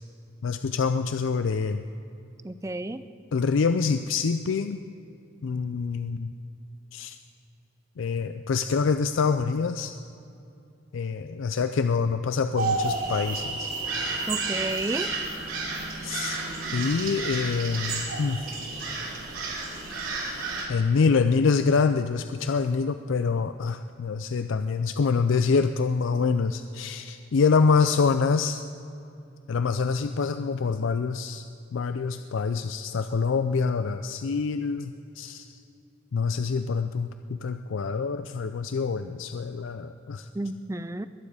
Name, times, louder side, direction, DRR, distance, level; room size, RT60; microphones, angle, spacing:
voice 1, 0.4-1.8 3.3-4.8 5.4-6.3 6.9-7.2 8.0-9.9 10.9-13.7 16.0-16.4 16.7-18.5 20.7-28.6 29.5-31.4 31.7-35.4 36.1-40.3, left 5 dB, 70° left, 9 dB, 0.4 m, -26 dB
voice 2, 2.4-3.0 14.3-15.1 40.3-41.1, right 2 dB, 15° right, 13 dB, 0.4 m, -31 dB
sound 1, 12.6-20.7, right 3 dB, 80° right, 3.1 m, -31 dB
22.0 x 9.6 x 4.9 m, 2.8 s
head